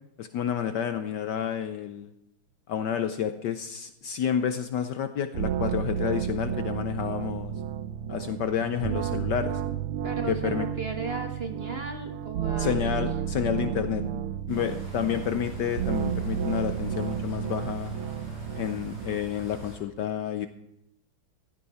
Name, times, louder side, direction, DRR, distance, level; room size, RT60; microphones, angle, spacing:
voice 1, 0.2-2.1 2.7-7.5 8.1-9.6 10.3-10.7 12.6-14.0 14.5-17.9 18.5-20.5, left 9 dB, 70° left, 10 dB, 1.1 m, -30 dB
sound 1, 5.3-19.2, right 9 dB, 80° right, 1.6 m, -32 dB
voice 2, 10.0-13.1 13.5-14.2 14.6-15.1, right 4 dB, 35° right, 5 dB, 1.1 m, -36 dB
sound 2, 14.5-19.8, equal, 65° right, 6.3 m, -44 dB
15.5 x 13.0 x 4.2 m, 0.81 s
omnidirectional pair, 2.4 m